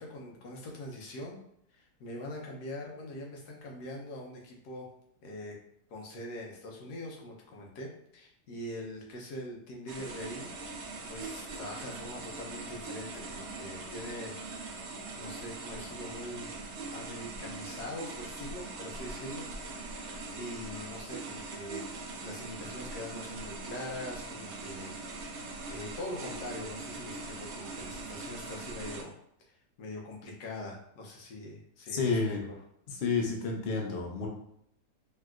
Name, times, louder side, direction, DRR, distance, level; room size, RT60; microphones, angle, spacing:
voice 1, 0.0-1.4 1.7-4.9 5.2-5.6 5.9-14.4 15.1-16.5 16.9-19.5 19.9-20.0 20.3-21.9 22.2-25.0 25.7-29.1 29.8-32.6, left 1 dB, 80° left, -1 dB, 1.2 m, -43 dB
sound 1, 9.9-29.0, right 3 dB, 70° right, 0.7 m, -42 dB
voice 2, 31.9-32.4 32.9-34.3, left 4 dB, 60° left, 0 dB, 0.6 m, -30 dB
3.2 x 2.8 x 2.3 m, 0.72 s
omnidirectional pair, 1.7 m